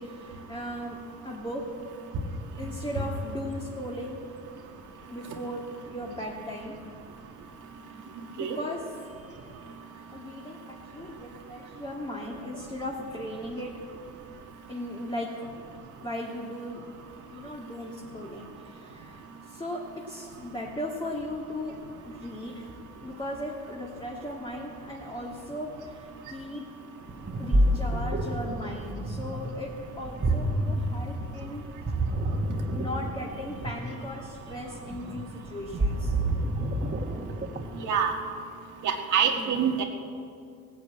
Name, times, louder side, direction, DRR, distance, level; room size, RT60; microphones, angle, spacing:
voice 1, 0.0-1.7 2.6-4.2 5.1-6.8 8.4-9.7 10.1-13.7 14.7-15.3 16.0-16.8 17.3-21.8 22.0-22.7 23.0-26.7 27.4-31.9 32.7-36.1 39.4-39.6, left 1 dB, 15° left, -3 dB, 2.1 m, -37 dB
Ocean, 27.1-37.9, right 1 dB, 30° right, 1.7 m, -29 dB
voice 2, 37.7-38.1 38.8-39.8, right 7 dB, 75° right, 2 dB, 1.7 m, -25 dB
17.5 x 8.4 x 8.7 m, 2.4 s
cardioid pair, 90°, 30 cm